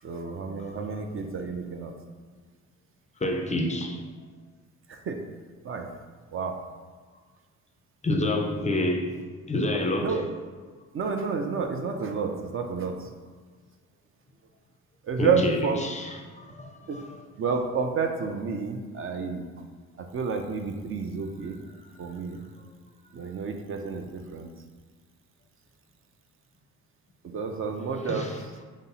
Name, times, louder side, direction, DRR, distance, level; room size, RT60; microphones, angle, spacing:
voice 1, 0.0-1.9 4.9-5.2 5.6-5.9 6.3-6.6 10.0-10.2 10.9-13.1 15.0-15.8 16.9-17.0 17.4-19.5 20.0-21.6 22.0-22.4 23.1-24.5 27.2-28.5, right 5 dB, 45° right, 5 dB, 0.5 m, -30 dB
voice 2, 3.2-4.0 8.0-9.2 9.5-10.2 15.2-17.1 28.1-28.4, left 1 dB, 25° left, 3 dB, 0.5 m, -28 dB
5.3 x 2.0 x 4.0 m, 1.5 s
cardioid pair, 90°, 30 cm